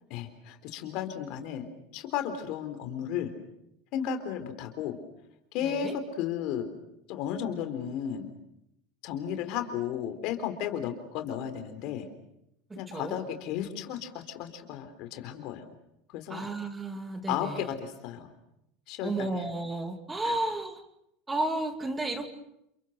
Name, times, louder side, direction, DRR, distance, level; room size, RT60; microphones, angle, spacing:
voice 1, 0.1-3.3 3.9-5.0 5.5-6.7 7.1-8.3 9.0-12.1 12.8-15.6 16.1-16.5 17.3-18.3 18.9-19.3 20.2-20.3, left 9 dB, 60° left, 8 dB, 3.8 m, -34 dB
voice 2, 5.6-6.0 12.7-13.2 16.3-17.7 19.0-20.8 21.3-22.3, right 2 dB, 15° right, 8 dB, 2.2 m, -33 dB
29.0 x 23.0 x 6.6 m, 0.81 s
supercardioid pair, 115°, 0 cm